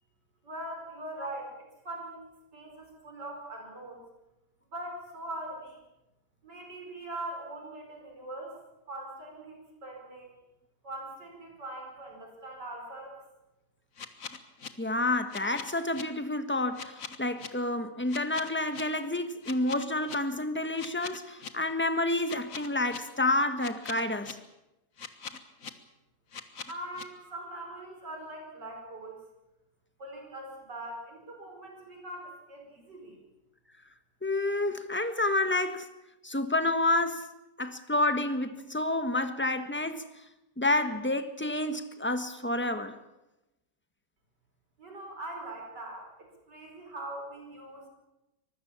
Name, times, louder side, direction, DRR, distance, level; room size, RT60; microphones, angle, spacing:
voice 1, 0.4-2.3 2.5-4.0 4.7-5.8 6.4-8.6 8.9-10.4 10.8-13.2 26.7-29.2 30.0-33.2 44.8-47.9, right 1 dB, 75° right, 5.6 m, -42 dB
sound 1, 14.0-14.7 15.3-16.0 16.7-17.5 18.1-18.8 19.4-20.2 20.8-21.5 22.3-23.0 23.6-24.3 25.0-25.7 26.3-27.0, left 6 dB, 50° left, 1.8 m, -41 dB
voice 2, 14.8-24.4 34.2-35.9 36.2-37.3 37.6-40.1 40.6-42.9, left 2 dB, 5° left, 1.2 m, -29 dB
24.5 x 20.0 x 7.2 m
omnidirectional pair, 1.9 m